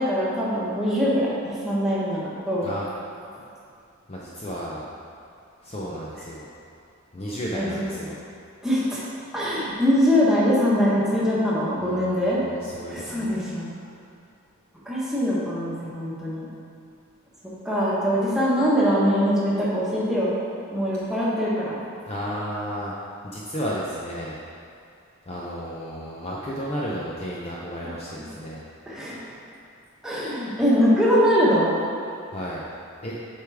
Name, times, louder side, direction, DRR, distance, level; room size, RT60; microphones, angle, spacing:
voice 1, 0.0-2.7 7.5-7.8 8.6-9.0 9.3-12.4 12.9-13.7 14.8-16.5 17.6-20.3 20.7-21.8 28.2-28.3 28.9-29.2 30.0-31.7, equal, ahead, -9 dB, 1.3 m, -22 dB
voice 2, 2.6-2.9 4.1-4.9 5.6-6.5 7.1-8.2 11.8-13.3 22.1-22.9 23.2-24.4 25.3-28.6 32.3-32.6 33.0-33.2, equal, 30° left, -5 dB, 0.6 m, -33 dB
8.0 x 4.9 x 3.4 m, 2.4 s
head